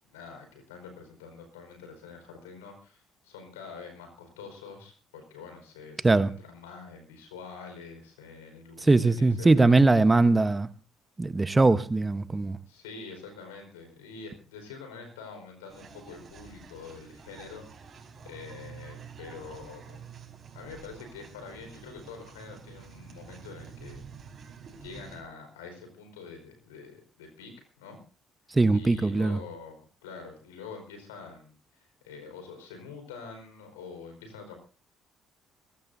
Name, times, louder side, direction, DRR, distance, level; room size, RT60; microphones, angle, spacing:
voice 1, 0.1-9.8 12.7-17.7 18.2-20.0 20.5-24.0 24.7-27.5 27.8-28.0 28.7-34.6, left 5 dB, 85° left, 4.8 m, -45 dB
voice 2, 8.8-10.7 11.2-12.6 28.5-29.4, right 3 dB, 25° right, 1.1 m, -21 dB
sound 1, 15.7-25.2, right 6 dB, 50° right, 5.1 m, -48 dB
22.0 x 18.5 x 2.7 m
hypercardioid pair, 50°, 0 cm